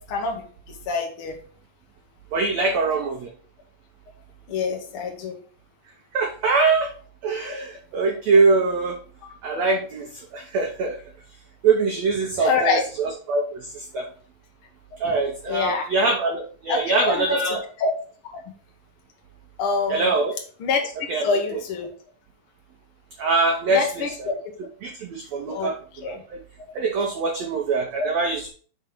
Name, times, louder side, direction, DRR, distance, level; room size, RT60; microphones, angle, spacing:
voice 1, 0.0-1.4 4.5-5.4 9.2-9.3 12.4-12.8 15.0-15.1 15.5-15.9 16.7-17.4 17.8-17.9 19.6-20.1 20.6-21.9 23.7-24.3 25.5-25.7 26.0-26.2 28.0-28.1, left 4 dB, 85° left, 2 dB, 1.2 m, -26 dB
voice 2, 2.3-3.3 6.1-6.9 7.2-9.0 9.4-11.0 11.6-14.0 15.0-17.6 19.9-20.3 21.1-21.3 23.2-23.9 24.2-24.3 24.8-25.8 26.1-26.4 26.7-28.4, right 3 dB, 80° right, 2 dB, 1.5 m, -23 dB
6.0 x 4.0 x 5.9 m, 0.43 s
omnidirectional pair, 4.4 m